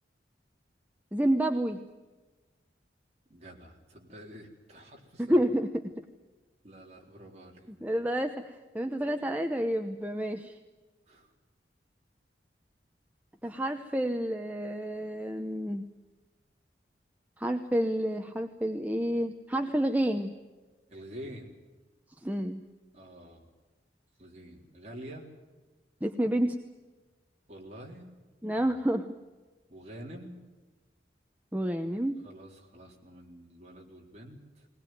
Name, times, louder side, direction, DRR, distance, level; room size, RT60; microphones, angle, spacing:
voice 1, 1.1-1.8 5.2-6.0 7.8-10.6 13.4-15.9 17.4-20.3 22.2-22.6 26.0-26.6 28.4-29.1 31.5-32.2, right 1 dB, 10° right, 5 dB, 0.8 m, -29 dB
voice 2, 3.3-5.4 6.6-7.7 11.1-11.3 20.9-21.6 22.9-23.5 24.2-25.3 27.5-28.1 28.5-28.7 29.7-30.5 32.2-34.7, equal, 35° right, -1 dB, 3.9 m, -47 dB
20.5 x 20.0 x 9.3 m, 1.2 s
head